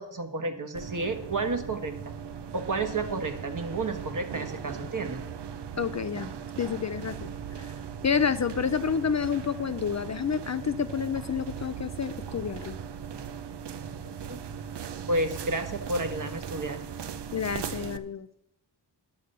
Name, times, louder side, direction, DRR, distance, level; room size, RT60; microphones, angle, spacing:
voice 1, 0.0-1.9 2.5-5.3 14.3-14.4 15.1-16.8, right 2 dB, 45° right, 6 dB, 1.4 m, -31 dB
sound 1, 0.7-18.0, right 7 dB, 70° right, 0.7 m, -38 dB
voice 2, 5.8-6.3 6.6-7.3 7.6-7.7 8.0-12.8 17.3-18.3, left 7 dB, 40° left, 11 dB, 0.4 m, -29 dB
11.0 x 6.7 x 6.6 m, 0.83 s
wide cardioid pair, 95°, 43 cm